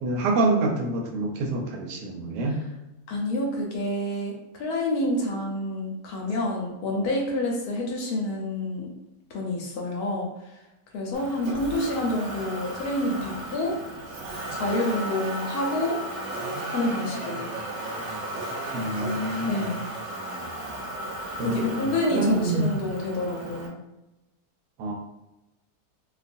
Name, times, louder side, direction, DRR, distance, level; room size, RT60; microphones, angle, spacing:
voice 1, 0.0-2.6 18.7-19.7 21.4-22.7 24.8-24.9, right 2 dB, 90° right, 2 dB, 1.2 m, -27 dB
voice 2, 3.1-8.9 9.3-10.3 10.9-13.7 14.5-16.0 16.7-17.5 19.5-19.9 21.4-23.8, left 1 dB, 75° left, 0 dB, 1.1 m, -28 dB
Motor vehicle (road), 11.1-23.7, right 1 dB, 60° right, 0.7 m, -35 dB
2.7 x 2.3 x 2.5 m, 0.95 s
omnidirectional pair, 1.7 m